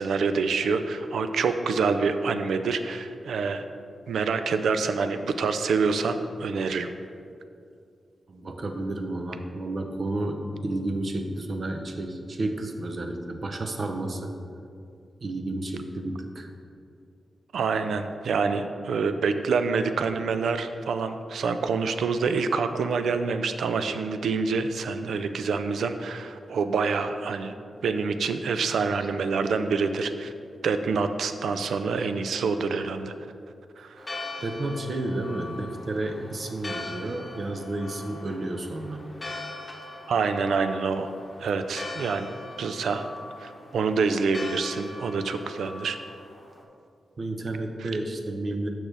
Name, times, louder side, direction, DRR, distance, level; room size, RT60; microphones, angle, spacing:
voice 1, 0.0-3.6 4.1-6.9 17.5-27.5 27.8-30.3 30.6-33.1 33.8-34.1 40.1-41.1 41.4-43.1 43.4-46.0 47.8-47.9, right 4 dB, 85° right, 9 dB, 0.3 m, -26 dB
voice 2, 8.3-14.3 15.2-16.5 32.0-32.1 32.7-32.8 34.4-39.0 47.2-48.7, right 2 dB, 50° right, 4 dB, 0.6 m, -31 dB
Church bell, 34.0-46.6, left 2 dB, 30° left, 0.9 m, -41 dB
6.3 x 6.0 x 3.3 m, 2.4 s
cardioid pair, 75°, 0 cm